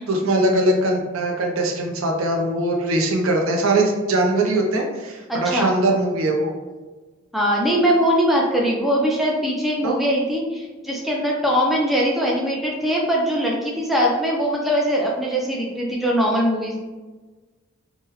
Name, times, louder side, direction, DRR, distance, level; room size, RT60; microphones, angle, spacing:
voice 1, 0.0-6.5 9.8-10.0, right 1 dB, 75° right, 1 dB, 0.6 m, -21 dB
voice 2, 5.3-5.7 7.3-16.8, equal, ahead, -3 dB, 0.4 m, -21 dB
3.6 x 2.2 x 2.9 m, 1.3 s
head